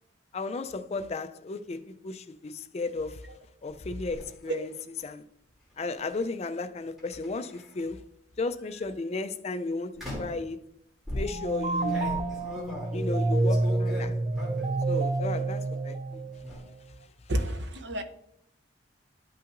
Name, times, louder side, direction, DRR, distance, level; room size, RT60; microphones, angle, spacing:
voice 1, 0.3-3.3 3.6-4.7 5.0-5.2 5.8-8.0 8.4-10.6 11.1-12.1 12.9-14.1 14.9-16.2, left 3 dB, 35° left, 0.4 m, -34 dB
sound 1, 3.7-4.2 6.0-6.2 7.0-7.8 8.5-8.8 10.0-10.5 11.1-14.8 15.2-15.7 16.0-16.6, left 1 dB, ahead, 2.8 m, -39 dB
sound 2, 11.2-16.7, right 2 dB, 30° right, 0.5 m, -28 dB
voice 2, 17.3-18.0, right 1 dB, 65° right, 0.7 m, -30 dB
11.5 x 5.7 x 2.5 m
head